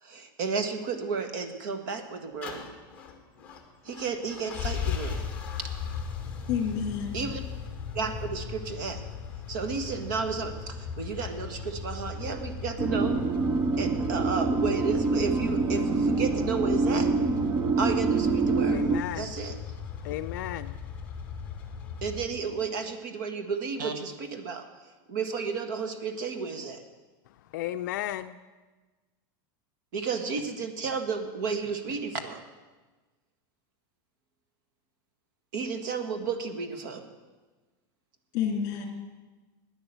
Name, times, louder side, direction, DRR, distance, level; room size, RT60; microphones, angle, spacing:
voice 1, 0.0-2.6 3.8-5.3 7.1-7.4 7.9-9.0 9.5-13.2 13.8-17.1 17.8-18.8 19.1-19.5 22.0-24.6 25.1-26.8 29.9-32.4 35.5-37.0, right 5 dB, 60° right, 9 dB, 1.5 m, -32 dB
sound 1, 2.4-22.3, left 6 dB, 10° left, 1.4 m, -37 dB
voice 2, 6.5-7.2 38.3-38.9, left 7 dB, 35° left, 3 dB, 2.4 m, -29 dB
sound 2, 12.8-19.0, right 3 dB, 15° right, 0.3 m, -26 dB
voice 3, 18.7-19.3 20.0-20.8 27.5-28.4, left 13 dB, 55° left, 9 dB, 0.4 m, -34 dB
11.5 x 9.7 x 8.0 m, 1.3 s
supercardioid pair, 180°, 12 cm